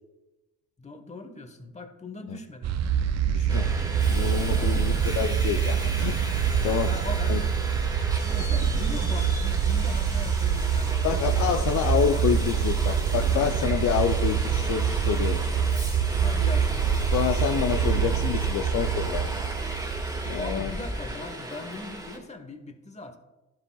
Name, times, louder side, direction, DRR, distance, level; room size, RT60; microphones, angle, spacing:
voice 1, 0.8-2.7 4.5-4.8 6.5-7.9 8.2-11.2 11.5-11.7 12.1-12.4 16.2-16.8 20.4-23.2, left 2 dB, 20° left, 8 dB, 1.1 m, -40 dB
sound 1, 2.6-20.7, right 7 dB, 60° right, 0.5 m, -25 dB
voice 2, 3.3-3.7 4.1-6.9 7.3-7.4 11.0-15.4 17.1-19.3 20.3-20.7, left 8 dB, 75° left, 6 dB, 0.6 m, -28 dB
Subway metro underground, 3.5-22.2, right 1 dB, 15° right, 1.8 m, -35 dB
12.0 x 7.5 x 2.3 m, 1.1 s
cardioid pair, 90°, 30 cm